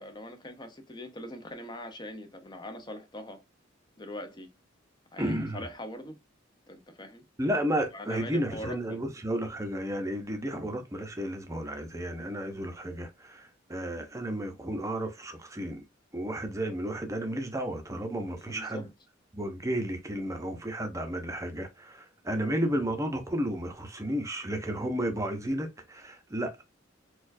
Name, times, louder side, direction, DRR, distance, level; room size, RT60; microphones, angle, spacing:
voice 1, 0.0-3.4 4.0-4.5 5.1-6.2 6.7-7.2 7.9-9.0 18.4-18.9, left 1 dB, 25° left, 0.7 m, -42 dB
voice 2, 5.2-5.6 7.4-15.8 16.1-18.9 19.3-26.6, right 1 dB, 15° right, 0.7 m, -32 dB
4.3 x 2.4 x 2.6 m
head